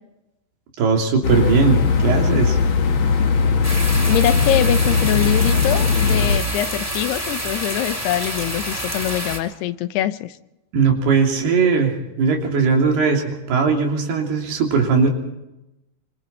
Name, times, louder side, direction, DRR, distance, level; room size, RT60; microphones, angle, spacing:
voice 1, 0.8-2.6 10.7-15.1, right 5 dB, 80° right, 1 dB, 5.1 m, -19 dB
sound 1, 1.2-6.4, left 5 dB, 55° left, 1.4 m, -18 dB
sound 2, 3.6-9.4, equal, 5° right, 3.7 m, -28 dB
voice 2, 4.1-10.4, left 13 dB, 90° left, 12 dB, 3.0 m, -23 dB
25.5 x 25.5 x 4.4 m, 0.93 s
omnidirectional pair, 4.5 m